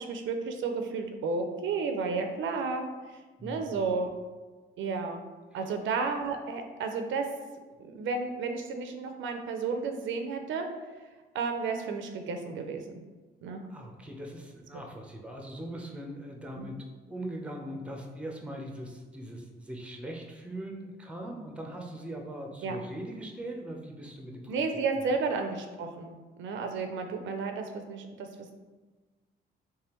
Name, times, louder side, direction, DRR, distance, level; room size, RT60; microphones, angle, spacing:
voice 1, 0.0-4.1 4.8-5.2 5.5-7.3 7.8-10.7 11.3-12.8 13.4-13.6 16.6-16.7 22.6-22.8 24.5-28.5, right 4 dB, 75° right, 5 dB, 0.5 m, -32 dB
voice 2, 3.4-3.9 5.5-5.6 13.7-24.6, right 1 dB, 5° right, 1 dB, 0.6 m, -41 dB
3.3 x 3.3 x 3.0 m, 1.3 s
cardioid pair, 90°, 20 cm